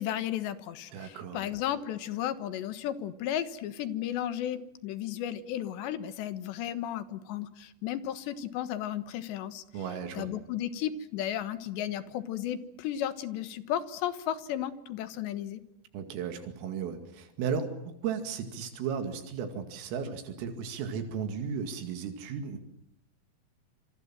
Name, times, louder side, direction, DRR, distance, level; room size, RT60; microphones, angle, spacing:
voice 1, 0.0-9.6 10.1-15.6, left 11 dB, 70° left, 12 dB, 3.3 m, -34 dB
voice 2, 0.9-1.4 9.7-10.3 15.9-22.6, right 6 dB, 85° right, 6 dB, 4.9 m, -35 dB
27.5 x 27.0 x 7.5 m, 0.74 s
omnidirectional pair, 5.7 m